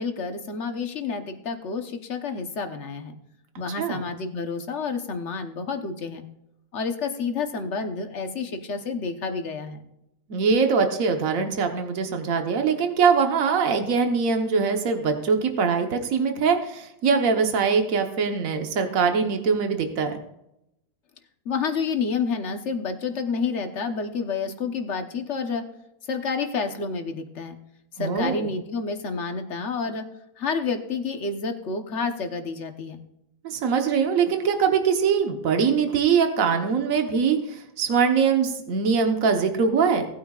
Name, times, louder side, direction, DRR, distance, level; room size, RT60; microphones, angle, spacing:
voice 1, 0.0-3.1 3.6-6.2 6.7-9.8 21.4-25.6 26.1-27.5 28.0-30.0 30.4-33.0, left 5 dB, 50° left, 6 dB, 1.3 m, -29 dB
voice 2, 10.3-20.2 28.0-28.5 33.4-40.1, right 5 dB, 60° right, 5 dB, 1.6 m, -22 dB
18.0 x 9.2 x 2.4 m, 0.84 s
omnidirectional pair, 1.7 m